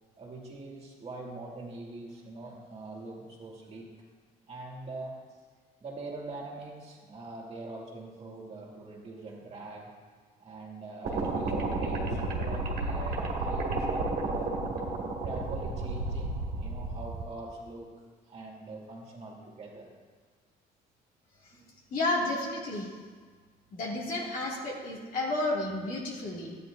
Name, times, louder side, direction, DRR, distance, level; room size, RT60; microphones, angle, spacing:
voice 1, 0.2-3.9 4.5-5.2 5.8-9.9 10.4-14.5 15.1-17.9 18.3-19.9 21.5-21.7, right 2 dB, 40° right, -3 dB, 2.4 m, -43 dB
sound 1, 11.0-17.2, right 2 dB, 60° right, 1.9 m, -32 dB
voice 2, 21.9-22.9 23.7-26.6, left 2 dB, 55° left, -4 dB, 2.4 m, -31 dB
12.0 x 9.7 x 2.7 m, 1.5 s
cardioid pair, 110°, 17 cm